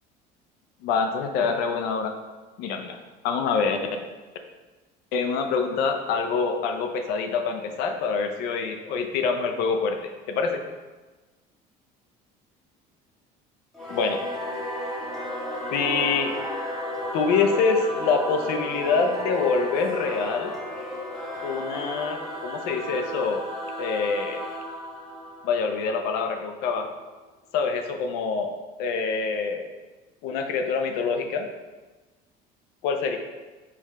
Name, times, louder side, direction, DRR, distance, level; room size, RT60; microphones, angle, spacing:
voice 1, 0.8-2.1 2.6-3.0 3.2-3.8 5.1-10.6 13.9-14.3 15.7-16.3 17.1-20.5 21.4-23.4 23.8-24.4 25.4-26.9 27.5-29.8 30.2-31.5 32.8-33.2, left 5 dB, 70° left, 6 dB, 0.5 m, -25 dB
Singing / Musical instrument, 13.7-26.6, left 1 dB, ahead, 0.7 m, -33 dB
4.6 x 2.4 x 4.5 m, 1.2 s
cardioid pair, 170°, 17 cm